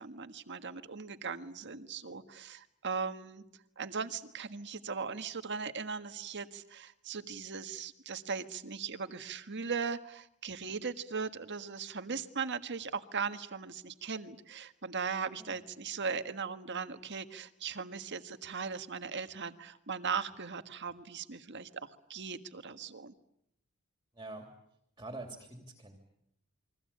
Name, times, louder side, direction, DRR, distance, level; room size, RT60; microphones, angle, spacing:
voice 1, 0.0-3.4 3.8-23.1, right 5 dB, 55° right, 9 dB, 1.6 m, -38 dB
voice 2, 24.1-24.5 25.0-26.0, right 2 dB, 20° right, 4 dB, 3.1 m, -45 dB
29.0 x 23.0 x 8.7 m, 0.77 s
head